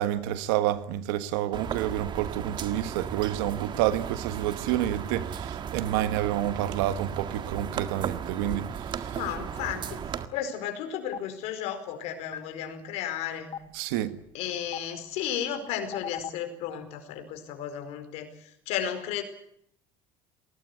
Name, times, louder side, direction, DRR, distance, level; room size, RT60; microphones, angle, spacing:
voice 1, 0.0-9.2 13.7-14.2, right 13 dB, 85° right, 1.5 m, -29 dB
sound 1, 1.5-10.3, right 8 dB, 45° right, 1.8 m, -35 dB
voice 2, 9.1-10.0 10.3-13.5 14.3-19.2, left 9 dB, 70° left, 4.8 m, -34 dB
Stream, 11.1-11.2 12.3-12.4 13.5-13.6 14.7-14.8 15.9-16.3, left 10 dB, 50° left, 1.8 m, -34 dB
21.0 x 18.5 x 9.8 m
supercardioid pair, 100°, 11 cm